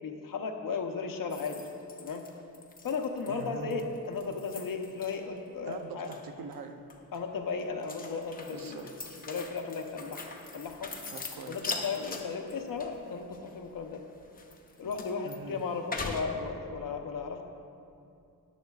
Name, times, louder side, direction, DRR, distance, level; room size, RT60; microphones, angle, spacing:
voice 1, 0.0-1.7 2.0-2.3 2.8-6.1 7.1-8.9 9.3-10.9 11.5-14.0 14.8-17.4, left 5 dB, 70° left, 4 dB, 0.9 m, -35 dB
sound 1, 1.3-5.4 5.7-6.5 6.9-16.2, left 3 dB, 25° left, 0.7 m, -42 dB
voice 2, 3.3-3.9 5.6-6.9 8.5-8.9 11.1-11.8 15.2-15.6, right 4 dB, 85° right, 6 dB, 0.7 m, -43 dB
13.5 x 9.9 x 2.4 m, 2.6 s
wide cardioid pair, 160°, 34 cm